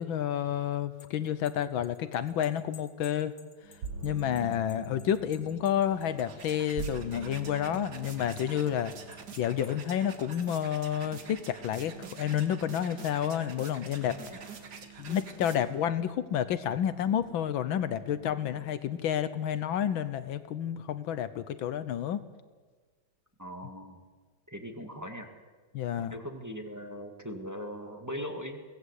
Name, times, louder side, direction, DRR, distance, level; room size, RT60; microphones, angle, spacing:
voice 1, 0.0-3.3 4.0-8.9 9.4-14.2 15.0-22.2 25.7-26.1, left 9 dB, 75° left, 13 dB, 1.6 m, -30 dB
sound 1, 0.7-7.0 7.3-8.5 9.1-9.7 10.1-10.7, left 6 dB, 45° left, 2.4 m, -56 dB
sound 2, 3.6-18.8, right 6 dB, 75° right, 2.2 m, -47 dB
sound 3, 5.8-15.9, right 5 dB, 55° right, 2.1 m, -47 dB
voice 2, 23.4-24.0 24.5-25.3 26.0-28.6, equal, 10° right, 3 dB, 1.9 m, -40 dB
23.5 x 17.5 x 8.3 m, 1.4 s
omnidirectional pair, 2.2 m